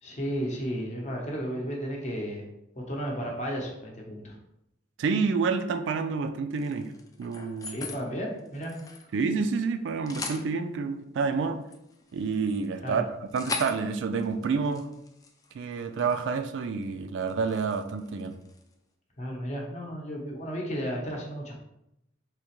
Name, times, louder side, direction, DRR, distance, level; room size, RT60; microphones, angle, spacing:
voice 1, 0.0-2.4 2.9-4.4 7.7-8.7 12.8-12.9 19.2-21.5, equal, 35° left, -1 dB, 0.7 m, -33 dB
voice 2, 5.0-6.9 7.2-7.8 9.1-11.6 12.1-14.9 15.5-18.4, right 5 dB, 65° right, 8 dB, 0.3 m, -28 dB
sound 1, 6.5-8.0 8.4-9.6 9.9-10.5 11.3-16.3 16.6-16.9 17.2-18.7, left 3 dB, 20° left, 0.3 m, -41 dB
3.5 x 2.9 x 3.0 m, 0.84 s
head